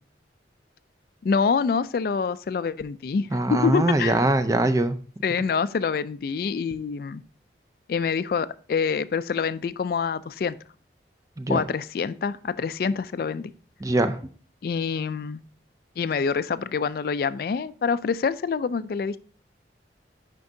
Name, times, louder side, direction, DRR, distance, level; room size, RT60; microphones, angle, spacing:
voice 1, 1.2-3.3 3.6-4.2 5.2-7.2 7.9-10.6 11.5-13.5 14.6-15.4 16.0-19.2, left 5 dB, 55° left, 15 dB, 0.3 m, -26 dB
voice 2, 3.3-5.0 11.4-11.6 13.8-14.2, right 2 dB, 20° right, 9 dB, 0.4 m, -22 dB
9.4 x 5.2 x 2.7 m, 0.43 s
head